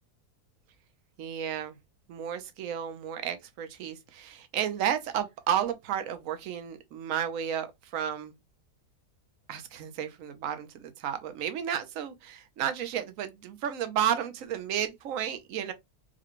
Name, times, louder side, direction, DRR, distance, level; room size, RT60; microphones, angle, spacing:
voice 1, 1.2-1.8 2.1-8.3 9.5-15.7, right 9 dB, 60° right, 1.0 m, -32 dB
4.9 x 2.3 x 3.0 m
omnidirectional pair, 1.8 m